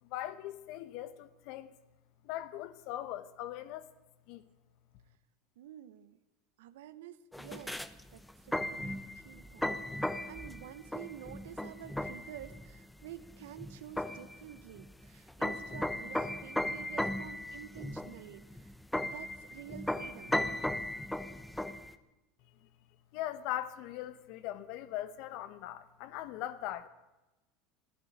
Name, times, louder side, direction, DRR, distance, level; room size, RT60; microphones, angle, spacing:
voice 1, 0.0-1.7 2.2-3.9 4.3-4.4 22.6-22.7 23.1-26.9, left 13 dB, 65° left, 1.1 m, -40 dB
voice 2, 5.6-6.2 6.6-18.7 19.0-20.4, right 11 dB, 80° right, 0.9 m, -50 dB
sound 1, 7.3-21.9, left 1 dB, 5° left, 0.9 m, -37 dB
14.5 x 11.0 x 8.8 m
hypercardioid pair, 85°, 0 cm